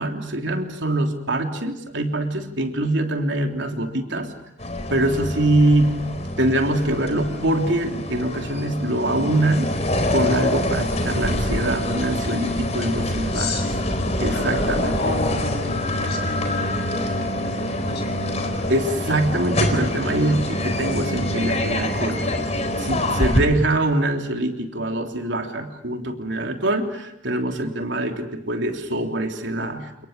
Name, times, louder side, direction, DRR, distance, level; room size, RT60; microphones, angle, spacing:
voice 1, 0.0-4.3 4.9-6.0 6.4-9.7 10.1-13.5 14.2-15.2 18.7-22.3 22.8-30.1, right 1 dB, 75° right, 4 dB, 3.4 m, -24 dB
sound 1, 4.6-23.4, left 1 dB, 35° left, 4.2 m, -25 dB
voice 2, 13.3-13.9 14.2-18.5 23.2-23.3, left 2 dB, 60° left, 4 dB, 7.9 m, -32 dB
29.0 x 29.0 x 6.8 m, 0.76 s
head